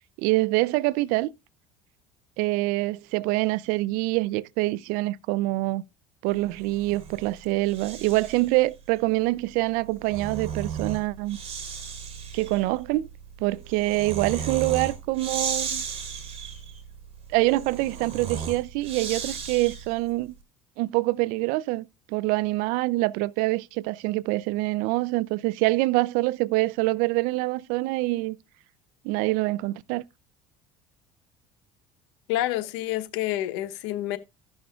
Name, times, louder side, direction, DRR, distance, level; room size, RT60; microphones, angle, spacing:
voice 1, 0.2-1.3 2.4-5.8 6.2-11.4 12.3-13.1 13.4-15.8 17.3-20.3 20.8-28.4 29.0-30.0, right 20 dB, 75° right, 0.4 m, -25 dB
Breathing, 6.6-8.5 9.8-20.1, right 6 dB, 45° right, 3.1 m, -35 dB
voice 2, 32.3-34.2, left 14 dB, 85° left, 0.9 m, -28 dB
15.5 x 6.2 x 2.3 m
supercardioid pair, 95°, 14 cm